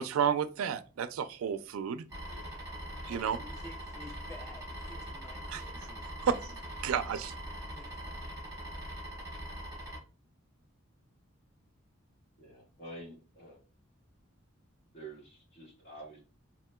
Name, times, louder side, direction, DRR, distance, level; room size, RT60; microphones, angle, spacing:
voice 1, 0.0-2.0 3.1-3.4 5.5-5.6 6.2-7.3, right 7 dB, 85° right, 0.3 m, -32 dB
sound 1, 2.1-10.0, equal, 20° right, 1.3 m, -42 dB
voice 2, 3.1-6.3 6.8-6.9 7.3-7.4 7.7-8.3, left 2 dB, 15° left, 0.4 m, -52 dB
voice 3, 12.4-13.6 14.9-16.2, right 1 dB, 50° left, 1.6 m, -48 dB
3.0 x 2.8 x 2.2 m
head